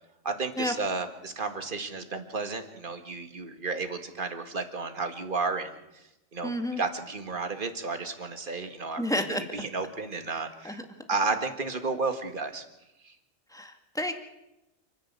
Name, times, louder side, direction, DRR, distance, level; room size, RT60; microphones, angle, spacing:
voice 1, 0.2-5.7 6.3-10.8 11.1-12.6 13.0-13.1, right 4 dB, 40° right, 7 dB, 2.0 m, -32 dB
voice 2, 6.4-6.8 9.0-9.4 10.6-10.8 13.5-14.1, left 1 dB, 5° left, 5 dB, 1.9 m, -30 dB
29.0 x 11.0 x 8.3 m, 0.92 s
omnidirectional pair, 1.4 m